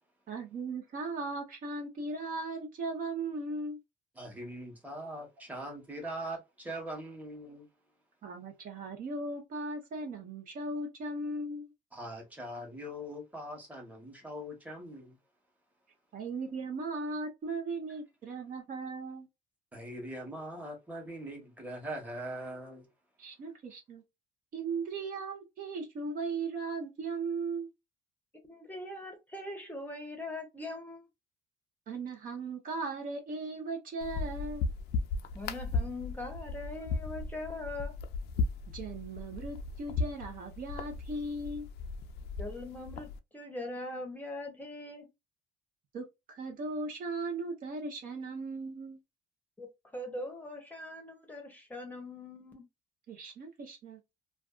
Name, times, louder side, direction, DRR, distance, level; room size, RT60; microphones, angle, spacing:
voice 1, 0.3-3.8 8.2-11.7 16.1-19.3 23.2-24.0 24.5-27.7 31.9-34.7 38.7-41.7 45.9-49.0 53.1-54.0, right 3 dB, 55° right, 0.8 m, -37 dB
voice 2, 4.2-7.7 11.9-15.2 19.7-22.9, right 1 dB, 10° right, 1.1 m, -41 dB
voice 3, 28.4-31.1 35.3-37.9 42.4-43.1 43.3-45.1 49.6-49.7 49.9-52.6, left 2 dB, 10° left, 0.8 m, -41 dB
sound 1, 34.0-43.2, left 4 dB, 75° left, 0.4 m, -36 dB
2.5 x 2.3 x 2.3 m
cardioid pair, 110°, 17 cm